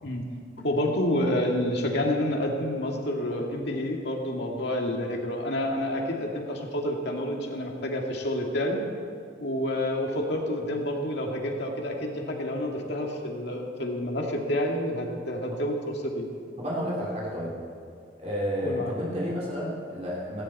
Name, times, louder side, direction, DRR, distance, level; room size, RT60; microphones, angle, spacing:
voice 1, 0.6-8.8 9.4-15.8 16.0-16.3 18.6-18.9, left 1 dB, 60° left, 1 dB, 2.3 m, -29 dB
voice 2, 16.6-17.5 18.2-20.4, equal, 35° right, -6 dB, 3.2 m, -31 dB
18.0 x 17.5 x 4.3 m, 2.5 s
head